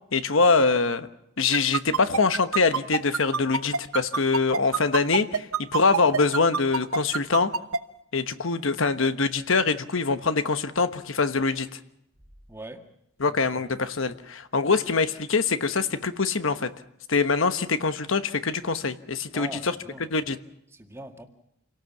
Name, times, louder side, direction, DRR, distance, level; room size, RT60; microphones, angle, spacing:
voice 1, 0.1-1.1 1.4-7.5 8.1-11.8 13.2-16.7 17.1-19.7 20.1-20.4, left 4 dB, 65° left, 11 dB, 1.1 m, -24 dB
sound 1, 1.5-7.8, right 5 dB, 85° right, 1.0 m, -25 dB
voice 2, 12.5-12.9 13.3-13.7 19.3-20.0 20.7-21.3, right 1 dB, 10° right, 4 dB, 2.0 m, -42 dB
28.0 x 18.0 x 7.2 m, 0.81 s
head